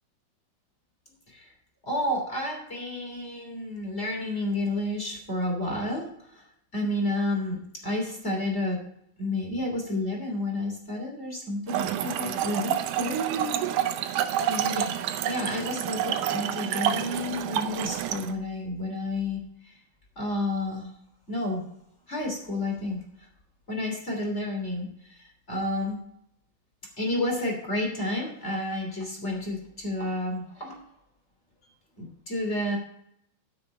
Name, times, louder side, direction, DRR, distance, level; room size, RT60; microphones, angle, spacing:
voice 1, 1.8-6.5 6.7-8.8 9.2-13.2 13.6-13.9 14.5-14.9 15.2-19.7 20.1-20.9 21.3-21.7 22.1-23.3 23.7-26.0 27.0-30.8 32.0-32.8, left 1 dB, 20° left, 0 dB, 2.8 m, -31 dB
Trickle dribble / Fill (with liquid), 11.7-18.3, right 10 dB, 75° right, 2.0 m, -28 dB
14.5 x 5.9 x 4.3 m, 0.73 s
omnidirectional pair, 4.2 m